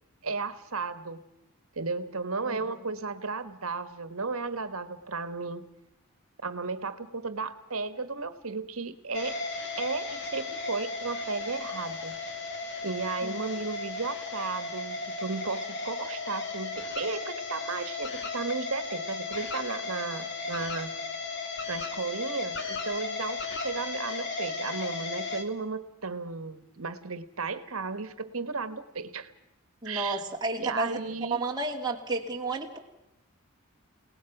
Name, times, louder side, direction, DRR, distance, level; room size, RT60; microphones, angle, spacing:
voice 1, 0.2-1.2 1.7-5.6 6.4-9.4 9.8-12.1 12.8-20.9 21.7-29.3 29.8-30.2 30.6-31.4, right 4 dB, 75° right, 12 dB, 1.5 m, -34 dB
voice 2, 2.4-2.8 13.2-13.4 29.8-31.0 31.3-32.8, right 3 dB, 20° right, 0 dB, 2.7 m, -32 dB
sound 1, 9.1-25.4, left 3 dB, 55° left, 2.5 m, -35 dB
30.0 x 18.5 x 6.0 m, 0.87 s
head